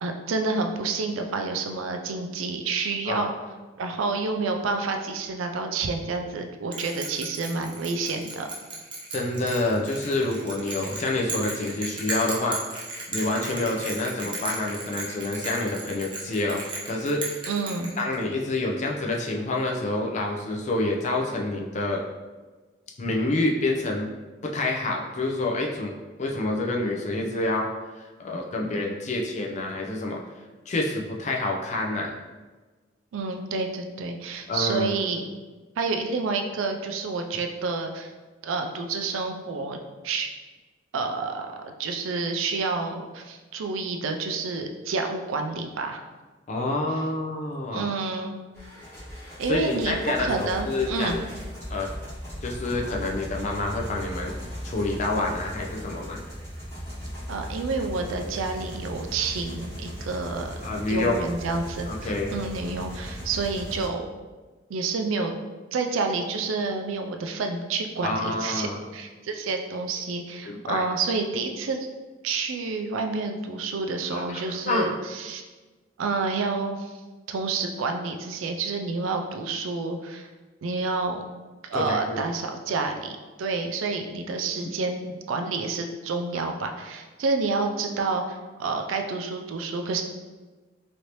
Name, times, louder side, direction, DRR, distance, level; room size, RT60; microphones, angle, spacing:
voice 1, 0.0-3.3 3.8-8.5 17.5-17.9 33.1-35.2 35.8-38.1 38.4-39.8 40.0-40.3 40.9-46.0 47.7-48.4 49.4-51.2 57.3-60.6 60.9-64.0 64.7-65.3 65.7-68.7 68.9-71.8 72.2-75.4 76.0-76.9 77.3-80.3 80.6-81.2 81.6-90.0, right 4 dB, 85° right, 5 dB, 0.4 m, -29 dB
Bell, 6.7-18.4, right 2 dB, 25° right, 0.5 m, -35 dB
voice 2, 9.1-12.6 13.1-17.5 18.0-22.1 23.0-24.1 24.4-25.9 26.2-30.2 30.7-32.2 34.5-34.9 46.5-47.9 49.5-51.2 51.7-51.9 52.4-54.3 54.6-56.2 60.6-61.2 61.9-62.4 68.0-68.8 70.5-70.9 74.1-74.9 81.7-82.2, left 2 dB, 35° left, 0 dB, 0.4 m, -27 dB
sound 1, 48.5-63.9, equal, 15° left, 1.0 m, -38 dB
3.2 x 2.6 x 2.9 m, 1.3 s
head